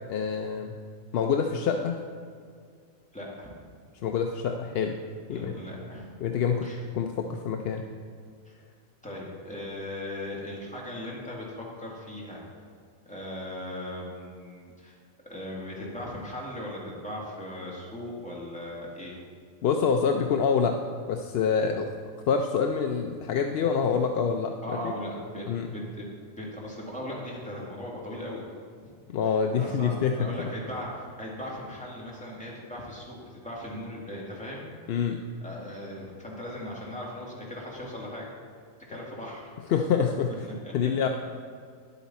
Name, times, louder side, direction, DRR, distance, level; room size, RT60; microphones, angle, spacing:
voice 1, 0.1-0.7 1.1-1.9 4.0-4.9 5.3-5.5 6.2-7.8 19.6-20.7 21.1-21.9 22.3-24.9 25.5-25.6 29.1-30.3 34.9-35.2 39.7-40.5 40.7-41.1, left 6 dB, 60° left, 4 dB, 0.7 m, -26 dB
voice 2, 3.1-3.5 5.3-6.1 6.6-6.8 8.5-8.6 9.0-11.5 11.7-12.4 13.0-15.0 15.3-19.2 23.8-24.0 24.6-28.5 29.5-34.7 35.4-38.3 38.9-39.5 40.6-40.7, left 1 dB, 5° left, -5 dB, 2.0 m, -38 dB
10.5 x 8.2 x 4.2 m, 2.1 s
omnidirectional pair, 1.4 m